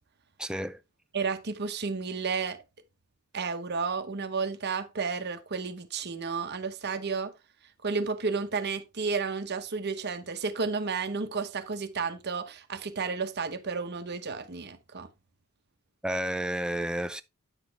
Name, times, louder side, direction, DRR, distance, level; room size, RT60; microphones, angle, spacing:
voice 1, 0.4-0.8 16.0-17.2, right 1 dB, 5° right, 0.3 m, -31 dB
voice 2, 1.1-2.6 3.3-7.3 7.8-15.1, right 4 dB, 45° right, 0.9 m, -32 dB
9.0 x 6.5 x 3.4 m
head